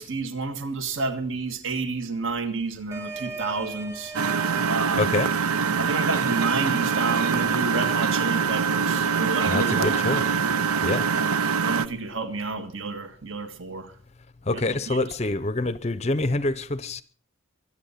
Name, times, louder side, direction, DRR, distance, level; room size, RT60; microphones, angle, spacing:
voice 1, 0.0-4.2 4.6-5.1 5.8-10.4 11.1-13.9 14.5-14.6 14.9-15.1, right 3 dB, 60° right, 1.7 m, -30 dB
sound 1, 2.9-7.9, right 4 dB, 10° right, 1.4 m, -40 dB
Engine, 4.1-11.9, right 6 dB, 75° right, 0.6 m, -24 dB
voice 2, 4.9-5.3 9.5-10.2 10.8-11.1 14.4-17.0, left 2 dB, 30° left, 0.6 m, -26 dB
Organ, 6.8-11.8, right 2 dB, 35° right, 1.7 m, -45 dB
23.5 x 8.7 x 5.6 m
head